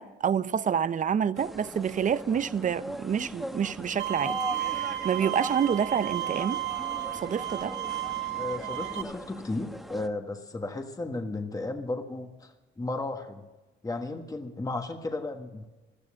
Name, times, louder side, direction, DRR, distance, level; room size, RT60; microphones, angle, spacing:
voice 1, 0.0-6.6 7.1-7.8, right 8 dB, 40° right, 0.6 m, -28 dB
sound 1, 1.3-10.1, equal, ahead, 1.2 m, -40 dB
Bowed string instrument, 4.0-9.0, right 14 dB, 65° right, 1.1 m, -33 dB
voice 2, 8.4-13.4 13.8-15.6, left 2 dB, 15° left, 1.4 m, -34 dB
17.0 x 12.5 x 6.3 m
cardioid pair, 90°, 20 cm